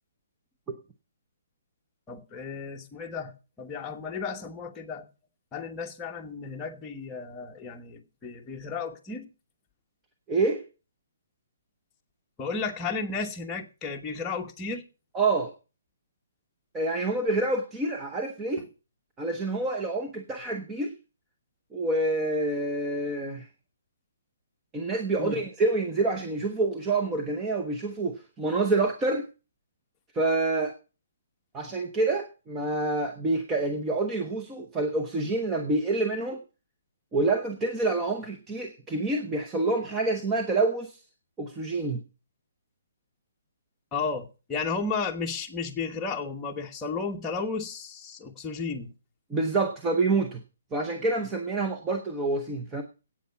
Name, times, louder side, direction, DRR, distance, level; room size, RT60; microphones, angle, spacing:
voice 1, 2.1-5.1 5.5-9.3 12.4-14.9 18.6-18.7 25.2-25.4 43.9-48.9, left 4 dB, 10° left, 1.1 m, -33 dB
voice 2, 10.3-10.6 15.1-15.5 16.7-18.6 19.2-20.9 21.7-23.5 24.7-29.3 30.1-30.8 31.5-36.4 37.1-41.0 41.4-42.0 49.3-50.4 50.7-52.8, right 2 dB, 10° right, 0.8 m, -27 dB
10.0 x 8.7 x 6.9 m
hypercardioid pair, 170°, 0 cm